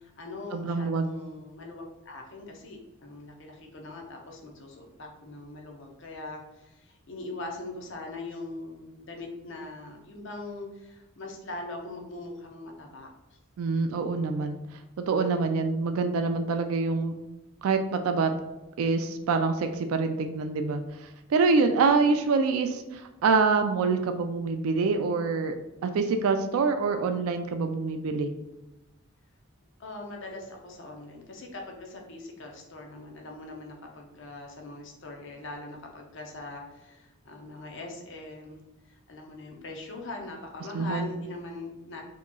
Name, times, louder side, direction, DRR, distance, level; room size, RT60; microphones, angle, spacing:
voice 1, 0.0-13.1 29.8-42.0, left 2 dB, 55° left, 1 dB, 0.6 m, -41 dB
voice 2, 0.5-1.1 13.6-14.6 15.1-17.1 17.6-18.3 18.8-25.5 25.8-28.3 40.7-41.1, right 4 dB, 80° right, 7 dB, 0.3 m, -26 dB
4.6 x 2.9 x 2.3 m, 1.0 s
head